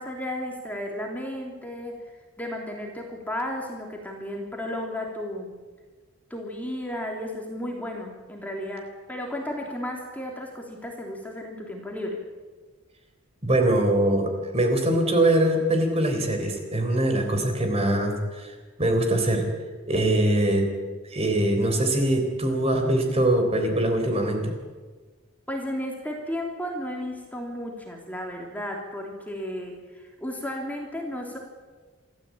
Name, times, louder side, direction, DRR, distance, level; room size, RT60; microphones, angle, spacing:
voice 1, 0.0-2.0 2.4-5.5 6.3-12.2 25.5-31.4, left 1 dB, 10° left, 0 dB, 3.1 m, -33 dB
voice 2, 13.4-19.5 19.9-20.7 21.0-24.5, right 1 dB, 30° right, 4 dB, 3.9 m, -23 dB
26.5 x 14.5 x 8.6 m, 1.4 s
head